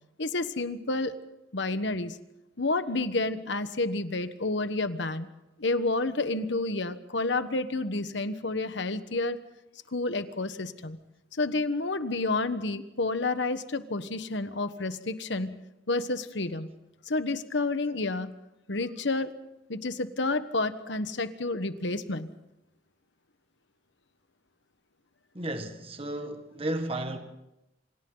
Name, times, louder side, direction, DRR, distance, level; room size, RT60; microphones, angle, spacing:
voice 1, 0.2-1.1 1.5-2.2 2.6-5.3 5.6-9.4 9.9-11.0 11.3-15.6 15.9-16.7 17.1-18.3 18.7-19.3 19.7-22.3, left 2 dB, 65° left, 1.3 m, -30 dB
voice 2, 25.3-27.2, right 1 dB, 30° right, 1.7 m, -33 dB
28.0 x 27.0 x 4.0 m
head